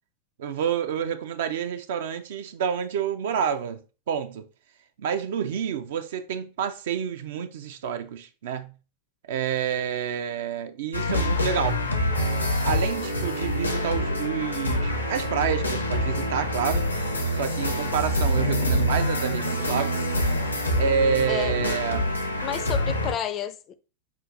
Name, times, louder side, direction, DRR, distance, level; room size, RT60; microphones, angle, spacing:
voice 1, 0.4-3.8 4.1-4.5 5.0-8.7 9.3-11.8 12.6-16.9 17.3-20.0 20.8-22.1, right 7 dB, 55° right, 0.4 m, -28 dB
sound 1, 10.9-23.1, left 1 dB, 85° left, 0.7 m, -26 dB
voice 2, 22.4-23.7, left 9 dB, 30° left, 0.4 m, -30 dB
5.7 x 2.5 x 2.4 m
figure-of-eight pair, 90°, 0 cm